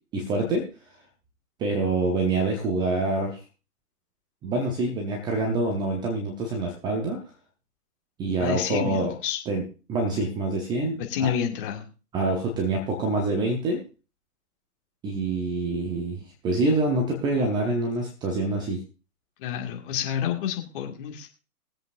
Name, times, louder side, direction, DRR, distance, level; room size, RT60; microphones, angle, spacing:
voice 1, 0.1-0.7 1.6-3.4 4.4-7.2 8.2-9.1 9.5-9.6 9.9-11.0 12.1-13.8 15.0-18.8, right 2 dB, 10° right, 2 dB, 0.8 m, -26 dB
voice 2, 8.4-9.4 11.1-11.9 19.4-21.3, left 9 dB, 30° left, 2 dB, 2.0 m, -29 dB
21.5 x 7.9 x 2.6 m, 0.33 s
figure-of-eight pair, 130°, 49 cm